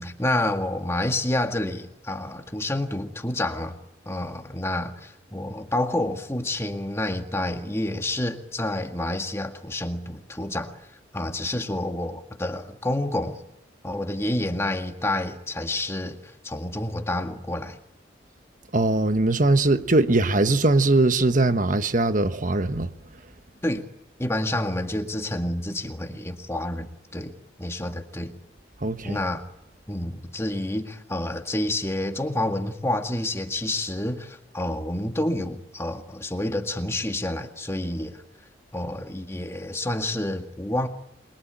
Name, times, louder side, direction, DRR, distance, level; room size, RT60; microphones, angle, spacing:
voice 1, 0.0-3.8 4.1-10.7 11.1-13.4 13.8-17.8 23.6-23.8 24.2-27.3 27.6-28.3 29.0-29.4 29.9-38.2 38.7-40.9, left 1 dB, 15° left, 1.9 m, -28 dB
voice 2, 18.7-22.9 28.8-29.2, right 2 dB, 45° right, 1.3 m, -21 dB
28.0 x 23.0 x 9.1 m
head